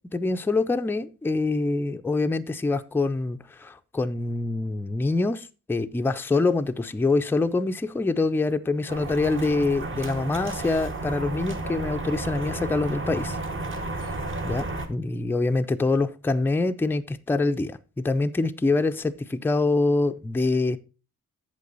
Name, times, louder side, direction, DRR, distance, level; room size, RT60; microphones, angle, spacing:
voice 1, 0.1-13.4 14.4-20.8, left 3 dB, 5° left, 0.4 m, -25 dB
sound 1, 8.9-14.9, right 2 dB, 40° right, 1.1 m, -32 dB
8.4 x 6.9 x 3.9 m
wide cardioid pair, 130°, 31 cm